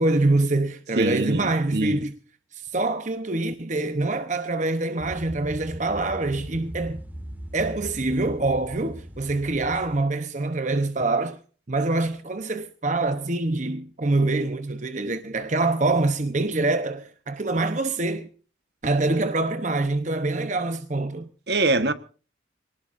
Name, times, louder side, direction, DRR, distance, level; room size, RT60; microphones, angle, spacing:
voice 1, 0.0-2.1 2.5-7.0 7.5-11.4 11.7-18.3 18.8-21.3, right 2 dB, 40° right, 0.9 m, -25 dB
voice 2, 0.9-2.0 21.5-21.9, right 2 dB, 55° right, 1.3 m, -24 dB
sound 1, 5.0-10.0, equal, 10° right, 2.3 m, -39 dB
25.0 x 19.0 x 2.6 m
head